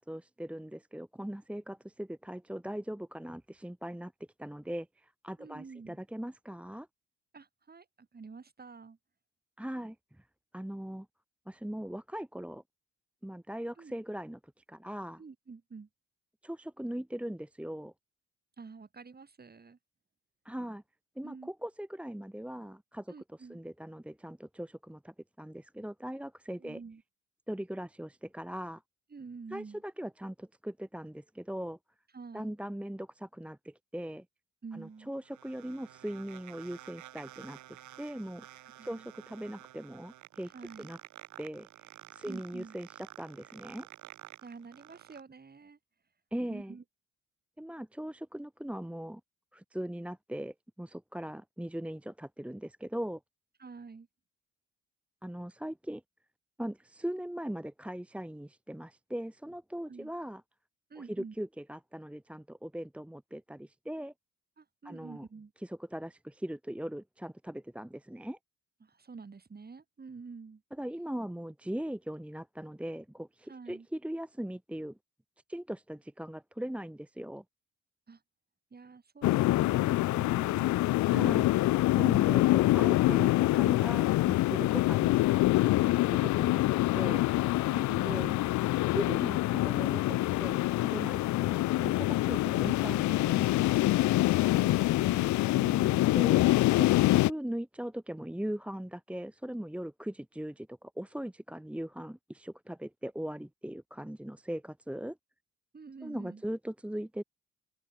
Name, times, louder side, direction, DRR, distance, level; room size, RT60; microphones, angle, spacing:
voice 1, 0.0-4.1 4.4-6.9 9.6-10.3 10.5-11.1 11.5-12.6 13.2-14.4 14.7-15.2 16.4-17.9 20.4-20.8 21.2-26.8 27.5-28.8 29.5-31.8 32.3-34.2 34.7-37.6 38.0-40.5 40.8-41.0 41.4-41.7 42.1-43.9 46.3-46.8 47.6-49.2 49.5-53.2 55.2-56.0 56.6-60.4 61.0-64.1 64.8-65.3 65.6-68.4 70.7-75.0 75.5-77.4 81.1-81.5 82.0-87.3 88.0-88.3 88.9-93.7 96.1-96.4 96.8-105.2 106.0-107.2, right 1 dB, 5° right, 1.4 m, -40 dB
voice 2, 5.4-6.0 7.3-9.0 13.8-13.9 15.2-15.9 18.6-19.8 21.2-21.5 23.1-23.6 26.6-27.0 29.1-29.8 32.1-32.5 34.6-35.1 38.8-39.1 40.5-40.9 42.2-42.8 44.4-45.8 46.5-46.8 53.6-54.1 59.9-60.1 60.9-61.4 64.6-65.5 68.8-70.6 73.5-73.9 78.1-78.2 78.7-80.9 87.6-88.4 94.2-96.2 105.7-106.4, right 4 dB, 30° right, 5.7 m, -48 dB
sound 1, 34.7-45.2, right 14 dB, 75° right, 1.2 m, -52 dB
Wind Ambience (Looping), 79.2-97.3, left 17 dB, 70° left, 0.5 m, -25 dB
open air
cardioid pair, 90°, 30 cm